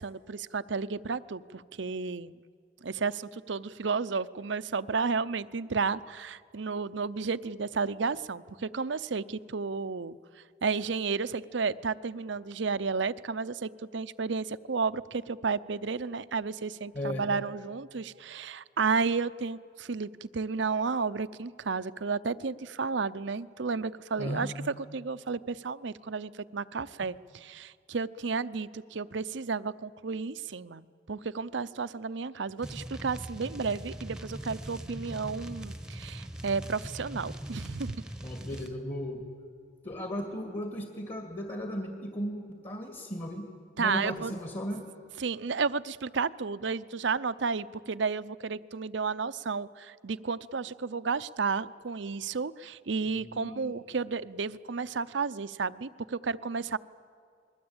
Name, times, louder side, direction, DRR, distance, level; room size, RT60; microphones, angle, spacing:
voice 1, 0.0-2.4 2.8-10.2 10.6-24.5 24.9-38.0 43.8-44.3 45.2-56.8, right 4 dB, 70° right, 14 dB, 0.7 m, -32 dB
voice 2, 16.9-17.3 24.2-24.5 38.2-39.2 39.8-43.5 43.8-44.9 53.1-53.7, equal, 35° left, 3 dB, 2.3 m, -36 dB
sound 1, 32.6-38.7, right 1 dB, 5° right, 1.1 m, -41 dB
28.5 x 21.5 x 8.8 m, 2.3 s
head